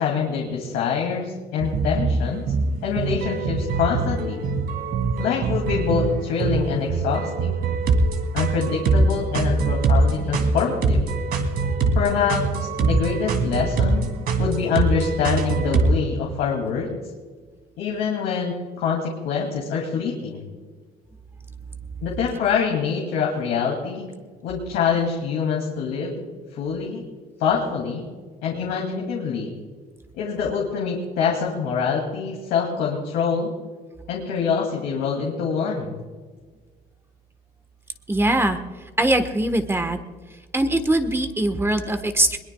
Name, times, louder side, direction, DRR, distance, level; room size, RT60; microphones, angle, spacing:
voice 1, 0.0-2.4 2.8-4.4 5.2-7.6 8.3-11.0 11.9-14.1 14.4-17.0 17.8-20.5 22.0-24.1 24.4-26.2 26.5-27.0 27.4-28.0 28.4-29.5 30.1-33.5 34.1-36.0, left 6 dB, 90° left, -2 dB, 2.5 m, -25 dB
sound 1, 1.6-15.9, right 3 dB, 65° right, 2.5 m, -23 dB
voice 2, 38.1-38.6 39.0-40.0 40.5-42.4, right 1 dB, 15° right, 8 dB, 1.2 m, -21 dB
21.5 x 20.5 x 2.3 m, 1.4 s
cardioid pair, 110°, 17 cm